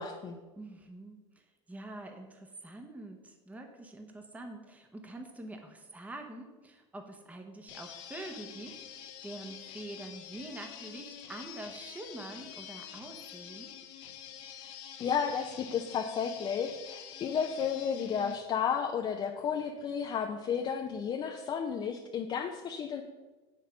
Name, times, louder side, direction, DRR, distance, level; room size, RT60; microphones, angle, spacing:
voice 1, 0.0-0.4 15.0-23.0, left 7 dB, 35° left, 3 dB, 0.6 m, -32 dB
voice 2, 0.6-13.7, right 2 dB, 10° right, 4 dB, 1.0 m, -46 dB
sound 1, 7.7-18.4, left 9 dB, 70° left, 1.2 m, -47 dB
7.2 x 6.0 x 5.7 m, 1.2 s
supercardioid pair, 115°, 14 cm